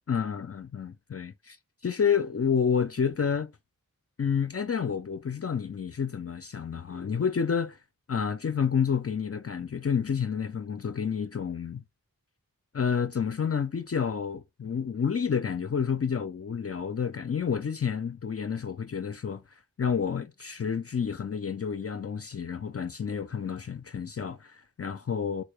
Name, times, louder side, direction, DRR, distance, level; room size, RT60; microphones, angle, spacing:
voice 1, 0.1-1.6 1.8-3.5 4.2-7.8 8.1-11.8 12.7-19.4 19.8-25.4, left 7 dB, 40° left, 0.4 m, -29 dB
4.1 x 2.2 x 3.1 m
wide cardioid pair, 60°, 37 cm